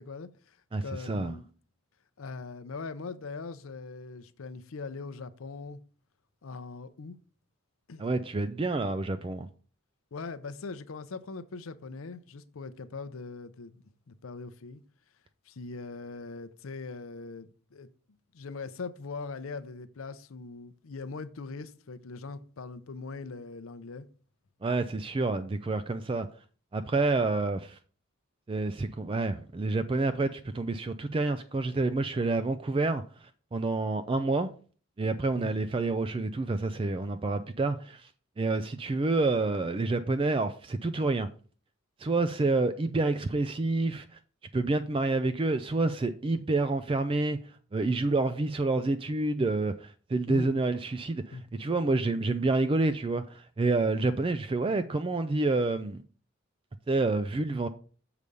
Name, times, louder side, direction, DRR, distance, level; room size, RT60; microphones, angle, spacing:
voice 1, 0.0-1.4 2.2-5.8 6.4-7.2 7.9-8.1 8.8-8.9 10.1-14.8 15.5-17.9 18.3-24.1 35.4-35.5 50.3-50.5 51.3-51.4, left 4 dB, 80° left, 0.6 m, -41 dB
voice 2, 0.7-1.3 8.0-9.5 24.6-26.3 26.7-27.8 28.5-34.5 35.0-38.1 38.4-41.3 42.0-44.2 44.5-56.0 56.9-57.7, right 3 dB, 25° right, 0.3 m, -28 dB
6.8 x 4.9 x 5.3 m
head